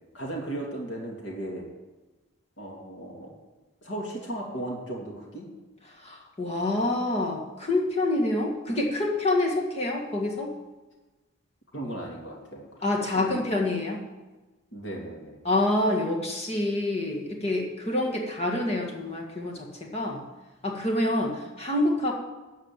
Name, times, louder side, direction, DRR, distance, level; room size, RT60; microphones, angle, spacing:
voice 1, 0.1-1.7 2.6-3.3 3.8-5.5 11.7-12.7 13.1-13.4 14.7-15.4, right 1 dB, 55° left, -1 dB, 2.7 m, -36 dB
voice 2, 6.0-10.5 12.8-14.0 15.4-20.2 20.6-22.1, left 2 dB, 30° left, 0 dB, 1.8 m, -27 dB
13.0 x 4.9 x 9.0 m, 1.2 s
head